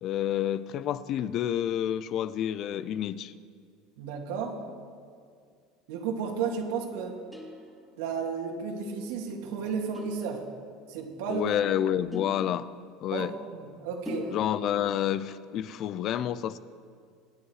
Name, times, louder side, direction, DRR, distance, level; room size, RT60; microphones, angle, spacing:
voice 1, 0.0-3.3 11.3-12.7 13.0-13.3 14.3-16.6, left 10 dB, 45° left, 16 dB, 0.6 m, -29 dB
voice 2, 4.0-4.6 5.9-7.2 8.0-10.4 10.9-11.5 13.1-14.3, right 6 dB, 80° right, 1 dB, 2.8 m, -33 dB
sound 1, 7.3-8.2 9.9-10.8 12.1-13.2 14.0-15.1, left 1 dB, 5° left, 2.6 m, -42 dB
25.0 x 9.9 x 4.9 m, 2.2 s
supercardioid pair, 135°, 0 cm